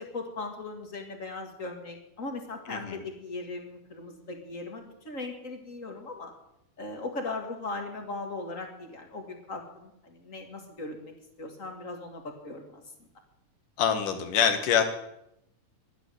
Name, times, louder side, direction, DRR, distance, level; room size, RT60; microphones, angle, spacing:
voice 1, 0.0-6.3 6.8-11.1 11.4-12.8, left 3 dB, 30° left, 4 dB, 1.8 m, -38 dB
voice 2, 2.7-3.0 13.8-14.8, left 7 dB, 75° left, 8 dB, 3.1 m, -25 dB
11.5 x 11.0 x 9.2 m, 0.81 s
omnidirectional pair, 3.8 m